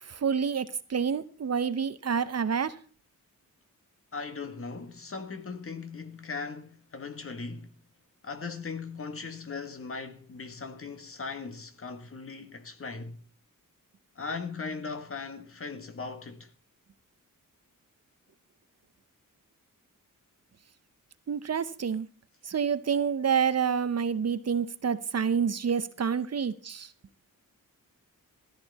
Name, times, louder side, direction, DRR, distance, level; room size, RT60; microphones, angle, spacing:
voice 1, 0.0-2.7 21.3-22.1 22.4-26.9, right 7 dB, 50° right, 0.8 m, -28 dB
voice 2, 4.1-7.8 8.2-13.2 14.2-16.5, left 4 dB, 40° left, 1.7 m, -38 dB
14.5 x 13.0 x 4.2 m
wide cardioid pair, 150°, 33 cm